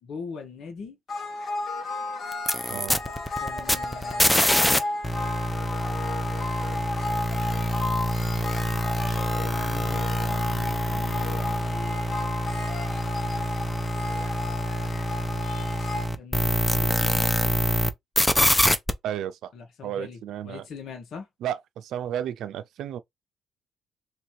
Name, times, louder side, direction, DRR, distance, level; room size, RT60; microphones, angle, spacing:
voice 1, 0.0-1.0 3.4-4.7 9.4-12.0 16.2-17.4 19.5-20.2 20.4-21.3, left 5 dB, 65° left, 1.4 m, -41 dB
sound 1, 1.1-16.1, left 2 dB, 50° left, 1.6 m, -33 dB
sound 2, 2.3-4.8 5.0-17.9 18.2-18.9, equal, 10° left, 0.6 m, -25 dB
voice 2, 19.0-19.5 19.8-20.7 21.4-23.0, right 10 dB, 80° right, 0.5 m, -32 dB
3.2 x 2.8 x 4.5 m
cardioid pair, 90°, 0 cm